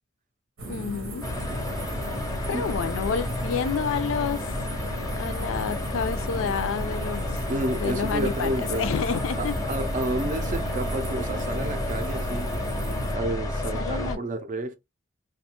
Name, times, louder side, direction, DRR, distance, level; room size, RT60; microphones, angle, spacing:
sound 1, 0.6-13.1, right 1 dB, 85° right, 0.9 m, -36 dB
voice 1, 0.7-1.2 2.5-4.5 5.2-7.3 7.8-9.5 13.7-14.2, left 6 dB, 70° left, 0.4 m, -29 dB
sound 2, 1.2-14.2, left 1 dB, 15° left, 0.5 m, -31 dB
voice 2, 2.5-2.8 7.5-8.9 9.4-12.5 13.1-14.8, right 1 dB, 40° right, 0.4 m, -31 dB
2.4 x 2.2 x 2.8 m
head